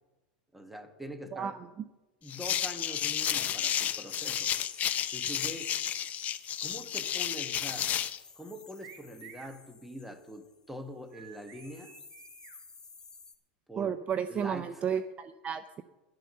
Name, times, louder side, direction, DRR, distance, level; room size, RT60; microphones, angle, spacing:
voice 1, 0.5-1.6 2.2-4.5 4.9-5.8 6.6-8.0 8.4-12.0 13.7-14.0 14.3-15.0, equal, 5° right, 7 dB, 1.4 m, -44 dB
sound 1, 2.3-8.2, left 10 dB, 35° left, 0.7 m, -32 dB
sound 2, 4.1-10.8 11.1-13.3, left 4 dB, 15° left, 1.5 m, -54 dB
sound 3, 8.8-9.6 11.1-12.6, right 9 dB, 55° right, 1.6 m, -52 dB
voice 2, 13.8-15.8, right 8 dB, 30° right, 12 dB, 0.5 m, -32 dB
11.0 x 9.3 x 6.7 m, 1.1 s
supercardioid pair, 110°, 5 cm